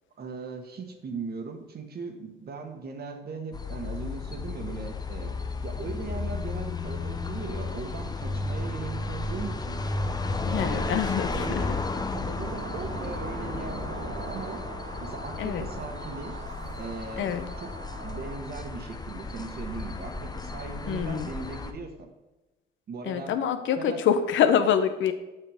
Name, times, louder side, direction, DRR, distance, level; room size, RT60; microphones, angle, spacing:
voice 1, 0.2-5.3 5.6-9.8 10.4-11.0 11.3-11.7 12.1-14.6 15.0-16.4 16.8-17.3 17.6-17.7 18.0-22.1 22.9-23.3 23.8-24.0, right 4 dB, 50° right, 5 dB, 1.3 m, -38 dB
sound 1, 3.5-21.7, left 3 dB, 20° left, 0.6 m, -33 dB
voice 2, 10.4-11.8 15.4-15.7 17.2-17.5 20.9-21.3 23.0-25.1, left 8 dB, 75° left, 10 dB, 0.7 m, -26 dB
sound 2, 12.3-18.4, right 3 dB, 75° right, 1.6 m, -41 dB
7.7 x 4.8 x 5.0 m, 1.1 s
cardioid pair, 90°, 20 cm